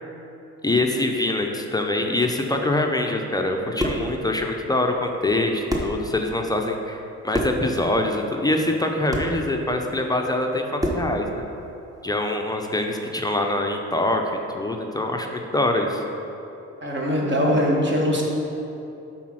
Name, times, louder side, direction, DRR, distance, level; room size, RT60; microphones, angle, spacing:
voice 1, 0.6-11.5 12.0-14.2 14.5-16.0, left 2 dB, 15° left, 2 dB, 0.5 m, -24 dB
sound 1, 3.5-4.1 5.3-5.4 5.7-6.0 7.3-7.7 9.1-9.4 10.8-11.1, equal, 10° right, 0.8 m, -26 dB
voice 2, 16.8-18.2, equal, 40° right, -2 dB, 1.4 m, -21 dB
5.7 x 4.1 x 6.2 m, 3.0 s
cardioid pair, 90°, 30 cm